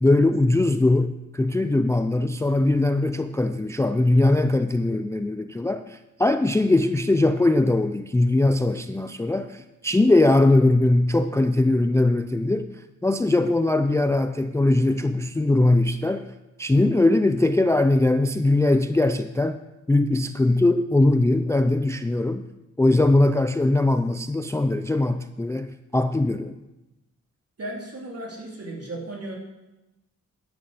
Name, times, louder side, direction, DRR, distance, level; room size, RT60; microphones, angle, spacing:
voice 1, 0.0-12.7 13.0-16.3 16.6-19.6 19.9-22.5 22.8-26.5, left 2 dB, 10° left, 9 dB, 0.3 m, -21 dB
voice 2, 27.6-29.4, right 1 dB, 50° right, -2 dB, 3.1 m, -35 dB
10.5 x 9.5 x 6.5 m, 0.99 s
wide cardioid pair, 175°, 31 cm